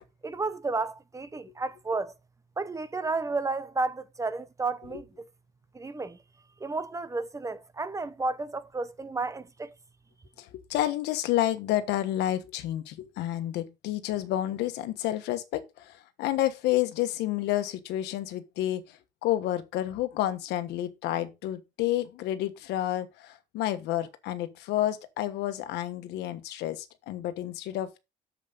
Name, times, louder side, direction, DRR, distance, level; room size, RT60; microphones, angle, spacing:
voice 1, 0.2-2.1 2.6-5.1 5.7-6.2 6.6-9.7, right 3 dB, 20° right, 0.9 m, -32 dB
voice 2, 10.4-28.0, left 13 dB, 85° left, 1.3 m, -30 dB
8.7 x 7.5 x 4.0 m
cardioid pair, 110°, 17 cm